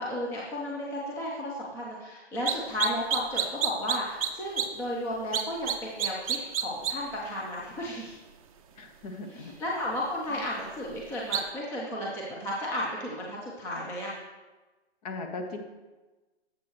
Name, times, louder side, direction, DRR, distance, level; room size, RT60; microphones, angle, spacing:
voice 1, 0.0-8.2 9.3-14.1, left 1 dB, 5° left, -4 dB, 0.6 m, -34 dB
sound 1, 2.5-2.6 2.8-4.3 4.6-4.7 5.3-5.7 6.0-6.9 11.3-11.4, right 9 dB, 35° right, 0.6 m, -27 dB
voice 2, 8.7-9.5 10.3-10.4 15.0-15.6, left 3 dB, 35° left, 5 dB, 1.1 m, -38 dB
10.5 x 7.5 x 3.0 m, 1.2 s
hypercardioid pair, 140°, 34 cm